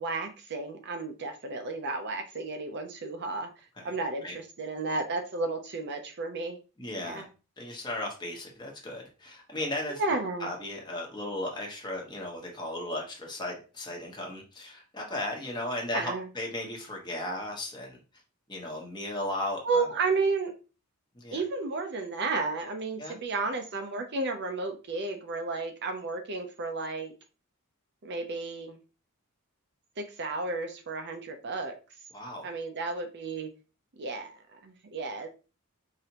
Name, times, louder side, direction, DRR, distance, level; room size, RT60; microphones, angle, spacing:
voice 1, 0.0-3.5 3.8-6.6 7.0-7.3 10.0-10.5 15.9-16.3 19.6-20.5 21.3-27.1 28.0-28.8 30.0-31.7 32.4-33.5 34.0-35.3, right 3 dB, 50° right, 5 dB, 0.6 m, -32 dB
voice 2, 6.8-7.2 7.6-10.0 10.4-18.0 18.5-19.9 21.1-21.4 23.0-23.2 32.1-32.5, left 1 dB, 20° left, -1 dB, 1.1 m, -36 dB
4.9 x 2.8 x 2.9 m, 0.34 s
head